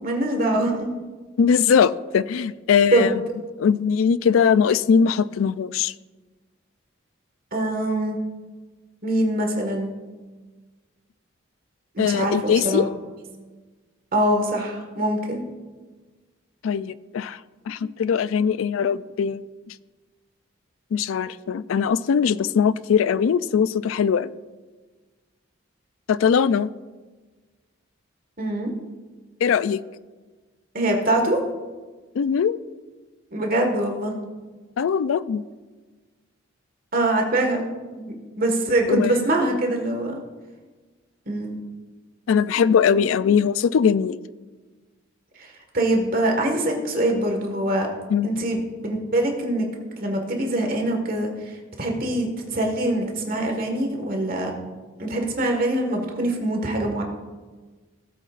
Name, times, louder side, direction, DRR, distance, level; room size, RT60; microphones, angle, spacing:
voice 1, 0.0-0.9 2.9-3.1 7.5-8.2 9.0-9.9 11.9-12.9 14.1-15.4 28.4-28.7 30.7-31.4 33.3-34.1 36.9-37.6 38.0-40.2 41.2-41.6 45.3-47.9 48.2-49.7 50.0-54.5 55.0-57.0, right 1 dB, 45° right, 2 dB, 1.7 m, -24 dB
voice 2, 1.4-3.1 3.6-5.9 12.0-12.9 16.6-17.4 17.7-19.7 20.9-24.3 26.1-26.7 29.4-29.8 32.1-32.6 34.8-35.4 38.9-39.2 42.3-44.2 48.1-48.4, left 7 dB, 85° left, 16 dB, 0.3 m, -21 dB
17.5 x 8.0 x 2.5 m, 1.3 s
head